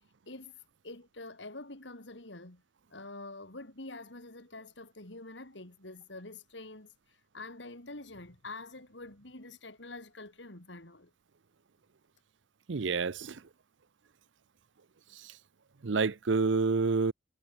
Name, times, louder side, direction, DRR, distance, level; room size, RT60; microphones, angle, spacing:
voice 1, 0.3-2.6 2.9-6.9 7.3-11.1, left 2 dB, 70° left, 3.9 m, -46 dB
voice 2, 12.7-13.4 15.8-17.1, right 4 dB, 80° right, 0.7 m, -28 dB
head